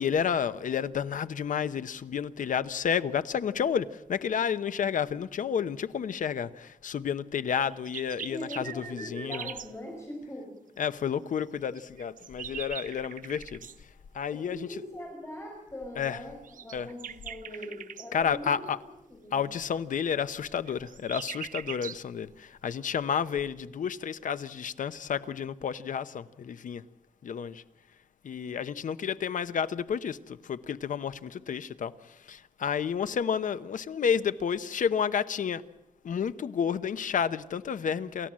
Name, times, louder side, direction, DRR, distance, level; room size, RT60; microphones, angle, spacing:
voice 1, 0.0-9.5 10.8-14.7 16.0-16.2 16.7-16.9 18.1-18.8 19.3-26.8 27.2-27.6 28.2-35.6 36.0-38.3, left 7 dB, 75° left, 0.9 m, -31 dB
sound 1, 7.6-9.7 11.7-13.8 16.4-18.1 20.5-22.0, right 8 dB, 80° right, 0.8 m, -41 dB
voice 2, 8.3-10.5 14.3-18.7 19.1-19.4, left 1 dB, 20° left, 5.3 m, -41 dB
28.5 x 14.0 x 7.5 m
wide cardioid pair, 155°, 14 cm